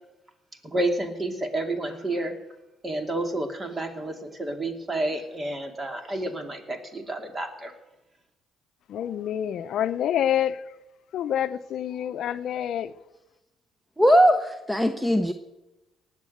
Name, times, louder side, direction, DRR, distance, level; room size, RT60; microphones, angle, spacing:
voice 1, 0.6-2.3 2.8-7.7, right 1 dB, 30° right, 2.6 m, -30 dB
voice 2, 8.9-10.6 11.1-12.9, left 10 dB, 70° left, 0.6 m, -27 dB
voice 3, 14.0-15.3, equal, 5° right, 0.9 m, -19 dB
18.5 x 7.5 x 7.8 m
cardioid pair, 80°, 0 cm